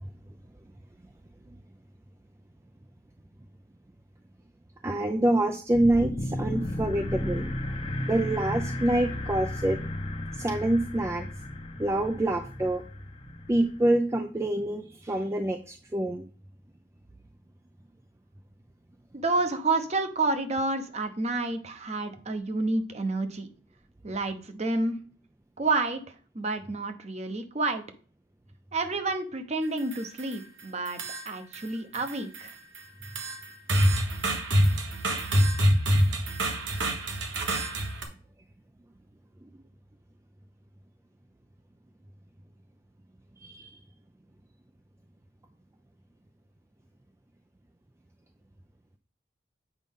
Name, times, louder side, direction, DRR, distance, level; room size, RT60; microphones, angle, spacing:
voice 1, 4.8-7.4 8.1-9.8 10.3-11.3 11.8-12.8 13.5-16.3 43.4-43.8, right 1 dB, 15° right, 5 dB, 0.4 m, -26 dB
sound 1, 5.7-13.8, left 1 dB, 30° left, 0.7 m, -34 dB
voice 2, 19.2-23.5 24.0-25.0 25.6-27.8 28.7-32.5, right 3 dB, 35° right, 7 dB, 0.8 m, -29 dB
sound 2, 29.6-30.4 30.9-31.7 31.9-38.0, equal, 80° right, 1.4 m, -26 dB
8.2 x 5.2 x 3.6 m, 0.42 s
head